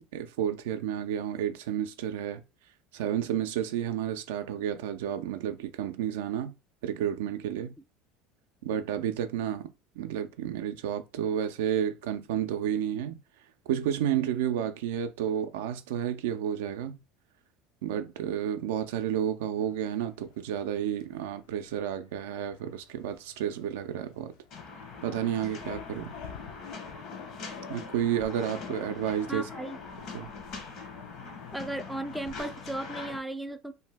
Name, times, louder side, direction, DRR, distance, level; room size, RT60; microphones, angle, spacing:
voice 1, 0.1-2.4 2.9-6.5 6.8-7.7 8.6-9.7 10.0-13.2 13.7-17.0 17.8-24.3 25.0-26.1 27.7-29.5 30.1-30.3, right 10 dB, 85° right, 0.3 m, -31 dB
sound 1, 19.6-31.8, left 7 dB, 75° left, 0.5 m, -48 dB
sound 2, 24.5-33.2, left 4 dB, 55° left, 0.9 m, -43 dB
voice 2, 29.3-29.8 31.5-33.7, right 1 dB, 5° right, 0.3 m, -35 dB
2.6 x 2.2 x 3.3 m
supercardioid pair, 100°, 0 cm